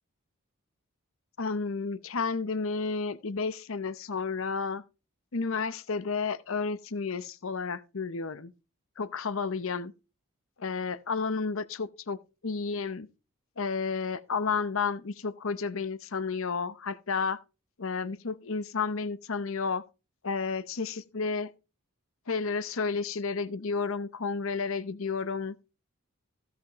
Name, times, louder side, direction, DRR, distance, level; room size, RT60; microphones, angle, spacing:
voice 1, 1.4-4.8 5.3-8.5 9.0-9.9 10.6-12.2 12.4-13.1 13.6-17.4 17.8-19.8 20.2-21.5 22.3-25.6, left 4 dB, 60° left, 0.7 m, -31 dB
15.5 x 6.0 x 3.0 m
head